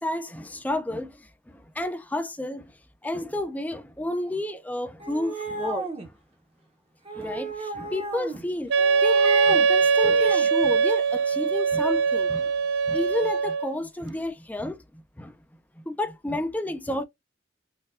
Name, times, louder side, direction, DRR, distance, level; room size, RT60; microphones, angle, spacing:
voice 1, 0.0-2.7 3.0-5.9 7.1-8.7 9.0-12.5 12.9-15.3 15.8-17.0, left 1 dB, 10° left, 0.4 m, -31 dB
sound 1, 5.0-6.1 7.1-8.4 8.8-9.7 10.0-10.5, right 1 dB, 30° right, 0.7 m, -33 dB
Wind instrument woodwind instrument, 8.7-13.8, right 5 dB, 65° right, 0.4 m, -22 dB
4.1 x 2.3 x 2.4 m
head